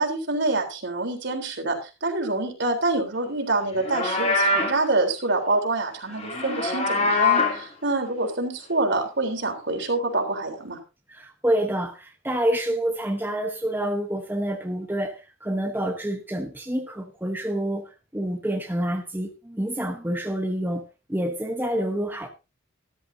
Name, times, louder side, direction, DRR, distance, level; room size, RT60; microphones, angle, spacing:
voice 1, 0.0-10.8, right 2 dB, 60° right, 3.6 m, -26 dB
Livestock farm animals working animals, 3.7-4.8 6.1-7.6, left 3 dB, 35° left, 2.8 m, -23 dB
voice 2, 11.1-20.8 21.1-22.3, right 1 dB, 10° right, 1.1 m, -27 dB
13.5 x 13.5 x 2.7 m
head